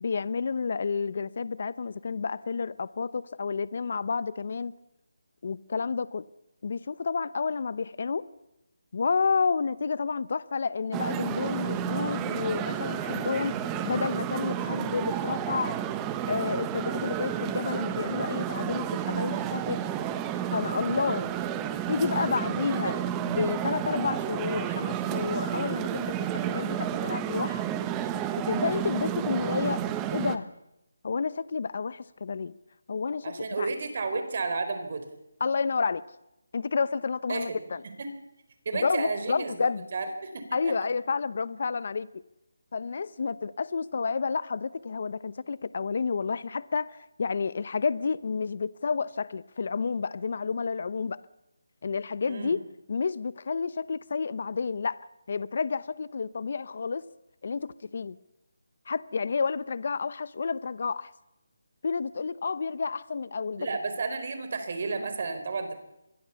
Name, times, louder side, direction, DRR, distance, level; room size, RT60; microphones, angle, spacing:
voice 1, 0.0-4.7 5.4-6.3 6.6-8.3 8.9-15.8 16.3-19.8 20.5-21.3 21.9-23.0 23.2-27.6 28.4-29.8 30.1-30.5 31.0-32.6 32.9-33.7 35.4-36.0 36.5-37.8 38.8-39.8 40.5-42.1 42.7-51.2 51.8-52.6 52.9-55.0 55.3-57.0 57.4-58.2 58.9-61.1 61.8-63.7, left 5 dB, 50° left, 0.8 m, -30 dB
sound 1, 10.9-30.4, right 10 dB, 15° right, 1.2 m, -31 dB
voice 2, 13.5-13.8 22.8-23.1 33.2-35.0 37.3-37.6 38.0-38.1 38.6-39.6 39.9-40.7 52.3-52.5 63.6-65.7, right 4 dB, 45° right, 4.5 m, -32 dB
25.0 x 21.0 x 7.1 m
figure-of-eight pair, 165°, 0 cm